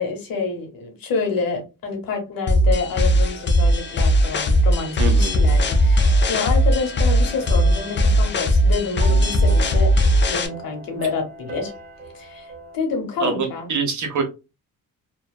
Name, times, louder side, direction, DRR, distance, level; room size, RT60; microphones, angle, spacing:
voice 1, 0.0-9.9 10.3-11.7 12.1-13.7, left 4 dB, 85° left, 2 dB, 1.1 m, -28 dB
sound 1, 2.5-10.5, equal, 35° left, 0.4 m, -18 dB
sound 2, 3.4-12.8, right 3 dB, 30° right, 0.9 m, -39 dB
voice 2, 5.0-5.4 13.2-14.2, right 5 dB, 60° right, 4 dB, 0.8 m, -24 dB
2.5 x 2.3 x 2.2 m, 0.28 s
cardioid pair, 110°, 34 cm